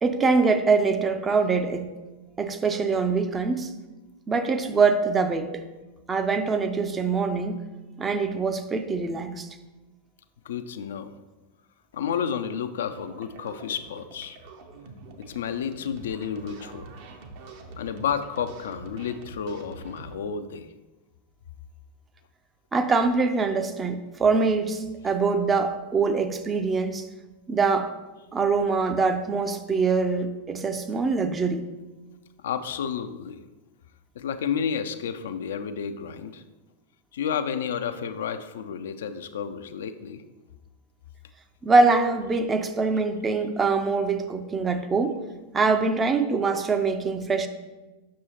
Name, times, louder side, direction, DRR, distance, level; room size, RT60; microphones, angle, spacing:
voice 1, 0.0-1.9 2.4-3.7 4.3-5.6 6.1-7.6 8.0-9.5 22.7-27.1 27.5-27.9 28.3-31.7 41.6-45.2 45.5-47.5, right 4 dB, 20° right, 8 dB, 0.5 m, -24 dB
voice 2, 10.4-11.1 11.9-14.4 15.2-16.9 17.8-20.7 32.4-33.4 34.2-36.4 37.1-40.2, left 7 dB, 60° left, 9 dB, 0.4 m, -31 dB
sound 1, 12.9-20.2, right 3 dB, 50° right, 0.8 m, -45 dB
7.4 x 6.1 x 2.9 m, 1.2 s
figure-of-eight pair, 90°, 0 cm